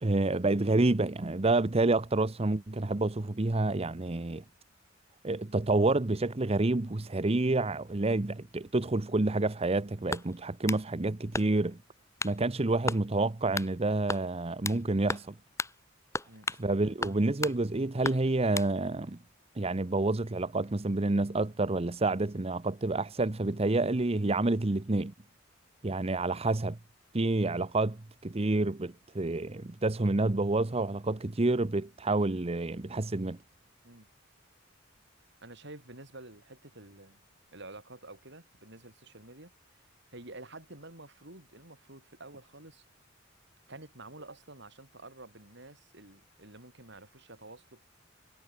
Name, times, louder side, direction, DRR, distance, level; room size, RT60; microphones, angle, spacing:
voice 1, 0.0-4.4 5.2-11.8 12.2-15.4 16.6-19.2 19.5-25.1 25.8-26.8 27.1-33.4, right 2 dB, 30° right, 0.8 m, -28 dB
sound 1, 10.1-10.8 11.3-11.7 12.2-12.4 12.9-13.0 13.5-13.7 14.1-14.8 15.1-15.3 15.6-15.7 16.1-16.7 17.0-17.6 18.0-18.7, left 3 dB, 15° left, 1.0 m, -35 dB
voice 2, 35.4-37.2 37.5-42.8 43.7-47.8, right 2 dB, 65° right, 7.6 m, -49 dB
head